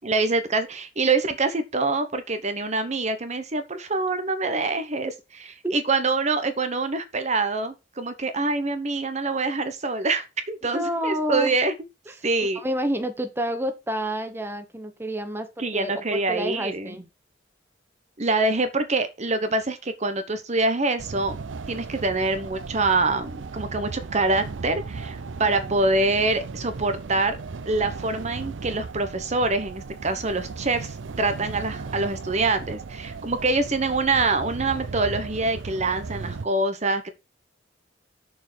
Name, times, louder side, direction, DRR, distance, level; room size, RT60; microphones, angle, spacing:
voice 1, 0.0-5.1 5.7-11.7 12.2-12.6 15.6-17.0 18.2-21.4 21.7-27.4 27.7-37.1, right 3 dB, 40° right, 1.0 m, -25 dB
voice 2, 10.7-11.5 12.1-12.3 12.5-17.0 25.4-25.7, equal, 10° right, 1.0 m, -29 dB
sound 1, 21.0-36.5, right 4 dB, 85° right, 0.6 m, -36 dB
6.8 x 4.6 x 6.1 m
head